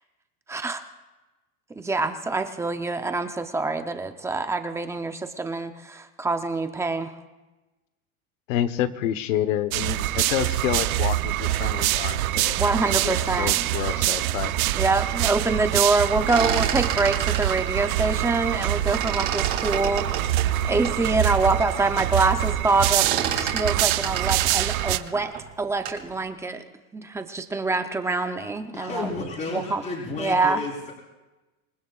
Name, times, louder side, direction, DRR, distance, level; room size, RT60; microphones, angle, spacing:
voice 1, 0.5-0.8 1.8-7.1 12.6-13.7 14.7-20.1 20.6-25.3 25.6-26.6 26.9-29.1 29.5-29.8 30.2-30.6, right 3 dB, 5° right, 7 dB, 0.6 m, -25 dB
voice 2, 8.5-12.6 12.9-14.5, left 11 dB, 65° left, 12 dB, 1.1 m, -28 dB
sound 1, 9.7-25.0, right 14 dB, 90° right, 0.8 m, -25 dB
sound 2, 16.1-18.6 18.9-21.0 21.5-21.6 21.9-22.3 22.5-26.1, right 9 dB, 40° right, 3.1 m, -30 dB
voice 3, 28.7-30.9, left 3 dB, 30° left, -6 dB, 3.9 m, -32 dB
27.0 x 20.0 x 2.4 m, 1.1 s
supercardioid pair, 155°, 41 cm